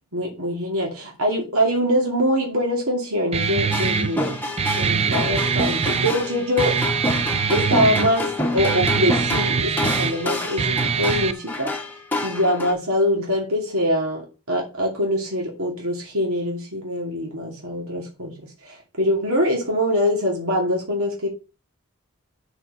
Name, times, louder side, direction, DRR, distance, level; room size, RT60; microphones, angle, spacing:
voice 1, 0.1-4.4 4.7-6.7 7.5-11.7 12.2-18.4 18.6-21.3, equal, 80° right, -1 dB, 2.5 m, -23 dB
Guitar, 3.3-11.3, right 6 dB, 30° right, 0.4 m, -24 dB
sound 1, 3.7-12.7, left 2 dB, 10° left, 1.3 m, -28 dB
6.3 x 4.5 x 6.6 m, 0.32 s
head